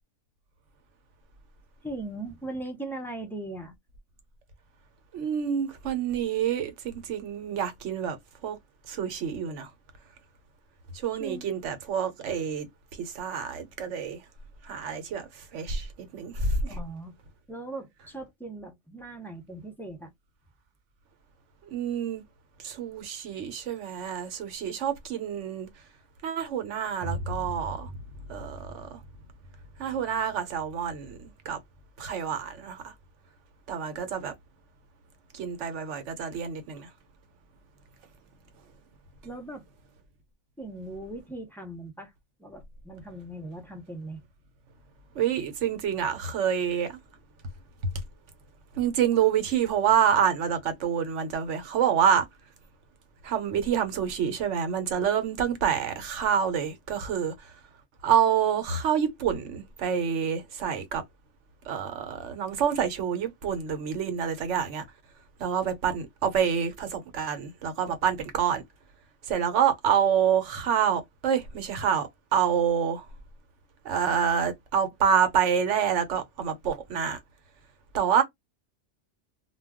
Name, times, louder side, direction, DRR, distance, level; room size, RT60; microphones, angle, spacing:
voice 1, 1.8-3.7 11.2-11.5 16.7-17.1 17.5-20.1 39.2-39.6 40.6-42.1 42.4-44.2, right 2 dB, 5° left, 0.5 m, -39 dB
voice 2, 5.1-8.2 8.4-8.6 8.9-9.7 10.9-12.7 13.0-14.2 14.6-16.6 21.7-22.2 22.6-25.7 26.2-27.9 28.3-29.0 29.8-31.6 32.0-32.9 33.7-34.3 35.3-36.9 45.1-47.0 48.7-52.3 53.2-57.5 58.0-61.0 61.6-64.8 65.4-68.6 69.3-73.1 73.8-77.2 77.9-78.2, right 8 dB, 80° right, 1.0 m, -27 dB
Boom, 27.0-34.8, equal, 60° right, 0.6 m, -42 dB
2.3 x 2.2 x 3.5 m
omnidirectional pair, 1.2 m